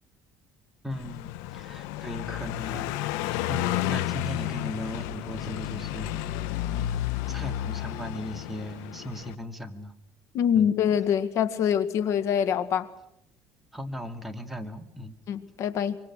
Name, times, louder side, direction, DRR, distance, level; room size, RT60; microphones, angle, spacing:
voice 1, 0.8-6.1 7.3-9.9 10.5-10.7 13.7-15.1, equal, 5° right, 2.8 m, -37 dB
Car passing by, 0.9-9.4, left 14 dB, 90° left, 1.1 m, -32 dB
voice 2, 10.3-12.9 15.3-16.0, left 8 dB, 65° left, 1.9 m, -24 dB
25.0 x 24.5 x 6.3 m
cardioid pair, 100°, 6 cm